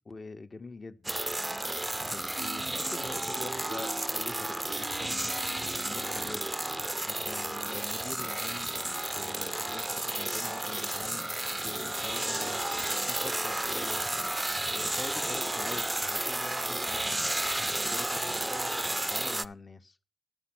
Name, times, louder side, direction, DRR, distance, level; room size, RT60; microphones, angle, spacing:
voice 1, 0.0-1.2 2.0-5.6 5.9-6.5 7.1-8.7 9.1-11.3 11.6-12.7 13.1-14.0 14.7-17.2 17.9-20.0, left 3 dB, 50° left, 0.8 m, -45 dB
sound 1, 1.0-19.4, right 1 dB, 15° right, 0.4 m, -32 dB
sound 2, 2.4-7.0, right 5 dB, 80° right, 0.4 m, -46 dB
11.0 x 6.1 x 5.9 m
cardioid pair, 60°, 0 cm